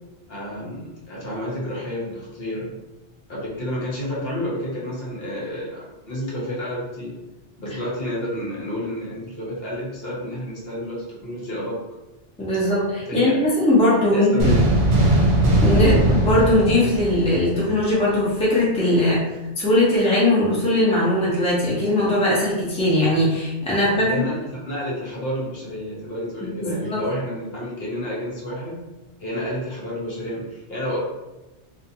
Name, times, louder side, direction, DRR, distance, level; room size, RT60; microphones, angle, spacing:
voice 1, 0.3-2.8 3.3-7.1 7.6-11.8 13.1-13.4 14.1-14.7 15.8-16.0 23.7-28.8 29.2-31.0, equal, 65° left, -5 dB, 0.9 m, -30 dB
voice 2, 12.4-14.5 15.6-19.2 19.6-24.0 26.6-27.0, left 1 dB, 5° left, -7 dB, 0.6 m, -20 dB
sound 1, 14.4-17.8, right 1 dB, 65° right, 0.8 m, -19 dB
2.4 x 2.4 x 2.7 m, 1.0 s
omnidirectional pair, 1.2 m